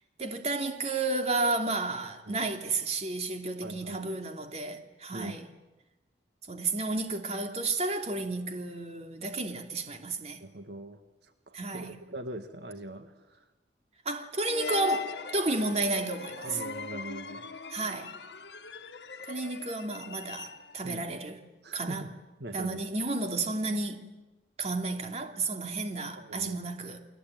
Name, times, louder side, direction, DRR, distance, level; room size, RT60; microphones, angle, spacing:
voice 1, 0.2-5.4 6.5-10.4 11.5-11.9 14.0-16.6 17.7-18.1 19.3-21.4 21.7-22.0 22.5-24.1 24.6-27.0, right 2 dB, 40° right, 2.8 m, -32 dB
voice 2, 3.6-4.0 5.1-5.4 10.4-13.5 16.4-17.5 20.8-21.0 21.6-22.1 22.4-22.8 26.2-26.6, right 1 dB, 75° right, 1.7 m, -42 dB
sound 1, 14.5-20.9, left 4 dB, 80° left, 1.6 m, -41 dB
29.5 x 21.0 x 9.2 m
head